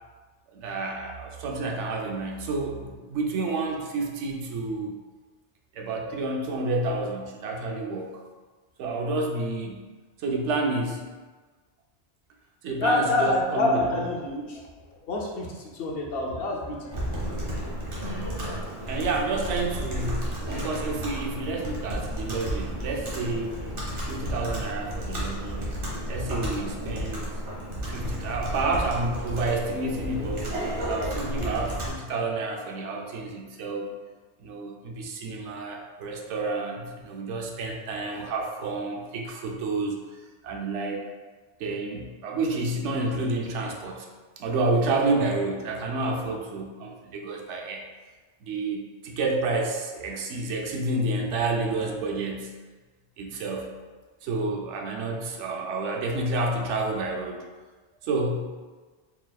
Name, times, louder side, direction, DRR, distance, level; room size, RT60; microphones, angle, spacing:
voice 1, 0.5-5.0 5.7-8.2 8.8-9.8 10.2-11.0 12.6-14.0 18.8-23.6 24.0-25.7 26.1-27.3 27.9-33.9 34.4-40.0 40.4-41.0 41.6-44.1 44.4-47.8 48.4-52.5 53.2-53.7 54.2-57.4 58.0-58.5, right 2 dB, 85° right, 1 dB, 0.9 m, -29 dB
voice 2, 12.8-14.6 14.9-17.2 55.4-55.5, left 2 dB, 60° left, -2 dB, 0.8 m, -27 dB
Computer keyboard, 16.9-31.9, equal, 50° right, 1.1 m, -32 dB
4.1 x 3.4 x 2.3 m, 1.3 s
omnidirectional pair, 1.2 m